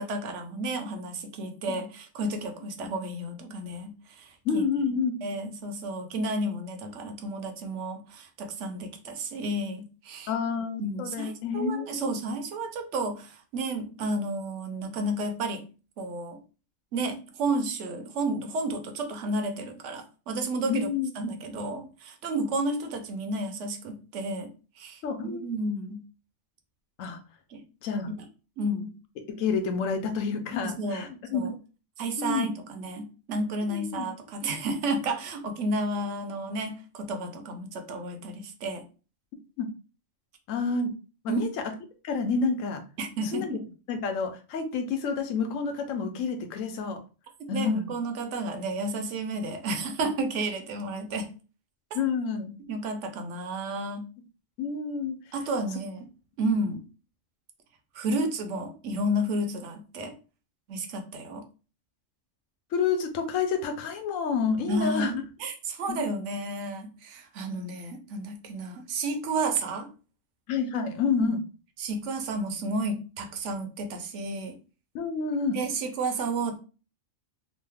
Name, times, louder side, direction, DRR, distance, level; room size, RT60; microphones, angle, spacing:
voice 1, 0.0-4.6 5.2-10.3 10.8-15.6 16.0-16.4 16.9-20.9 21.2-25.0 25.3-26.0 27.5-27.6 28.6-28.9 30.6-31.6 32.0-38.9 41.3-41.4 43.0-43.6 47.5-51.3 51.9-52.0 52.7-54.1 55.3-56.1 56.4-56.8 57.9-60.2 60.7-61.4 64.7-69.9 71.2-71.3 71.8-74.6 75.5-76.6, right 2 dB, 70° right, 6 dB, 0.9 m, -31 dB
voice 2, 4.4-5.3 10.3-12.1 20.7-21.1 25.0-25.4 27.0-27.2 27.8-28.1 29.4-31.4 32.2-32.5 33.7-34.1 39.6-39.7 40.5-40.9 41.2-41.5 42.0-42.8 43.3-43.5 43.9-47.0 47.5-47.9 51.9-52.5 54.6-55.2 62.7-65.2 65.9-66.0 70.5-71.4 74.9-75.6, left 5 dB, 90° left, 6 dB, 1.0 m, -29 dB
3.1 x 2.0 x 3.3 m, 0.34 s
omnidirectional pair, 1.3 m